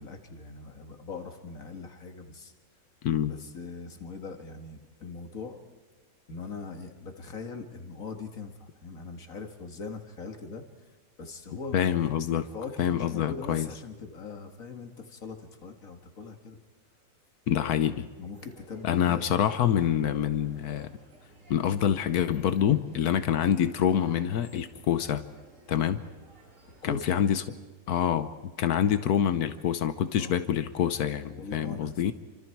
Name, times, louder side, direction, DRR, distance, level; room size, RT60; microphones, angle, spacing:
voice 1, 0.0-2.5 3.3-5.6 6.3-10.7 11.2-12.0 12.4-16.6 18.2-19.3 25.9-26.1 26.8-27.2 30.1-30.4 31.3-32.1, left 4 dB, 60° left, 5 dB, 2.3 m, -41 dB
voice 2, 11.7-12.4 12.8-13.7 17.5-18.1 18.8-20.9 21.5-25.2 25.7-26.0 26.8-27.4 27.9-28.3 28.6-32.1, left 9 dB, 85° left, 11 dB, 1.4 m, -26 dB
sound 1, 18.3-27.0, right 2 dB, 55° right, 3.4 m, -56 dB
29.0 x 25.5 x 4.6 m, 1.4 s
omnidirectional pair, 1.6 m